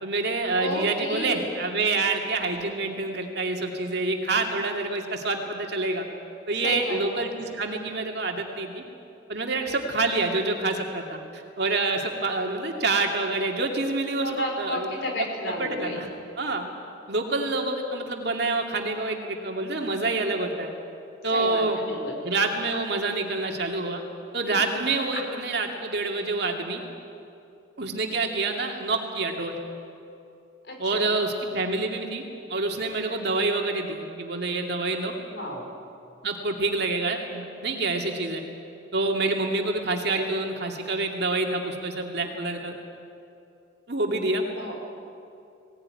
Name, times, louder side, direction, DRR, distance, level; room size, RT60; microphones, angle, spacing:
voice 1, 0.0-6.0 6.5-8.8 9.3-14.9 15.2-16.1 16.4-16.7 17.1-20.7 21.2-21.8 22.2-24.0 24.3-26.8 27.8-29.6 30.8-32.2 32.5-35.1 36.2-38.4 38.9-42.7 43.9-44.4, right 3 dB, 55° right, 2 dB, 2.5 m, -27 dB
voice 2, 0.6-1.5 6.6-7.2 14.2-16.0 21.3-22.2 24.5-24.6 25.1-25.2 30.6-31.1 35.2-35.7 44.5-44.7, left 1 dB, 60° left, 2 dB, 4.5 m, -32 dB
20.0 x 18.0 x 9.8 m, 2.7 s
head